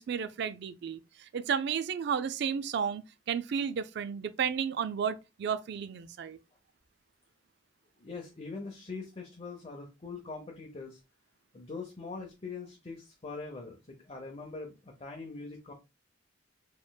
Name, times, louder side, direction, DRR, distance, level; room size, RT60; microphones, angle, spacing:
voice 1, 0.0-6.4, right 7 dB, 60° right, 0.3 m, -33 dB
voice 2, 8.0-11.0 11.5-15.7, left 4 dB, 30° left, 0.7 m, -42 dB
4.2 x 3.1 x 2.2 m
head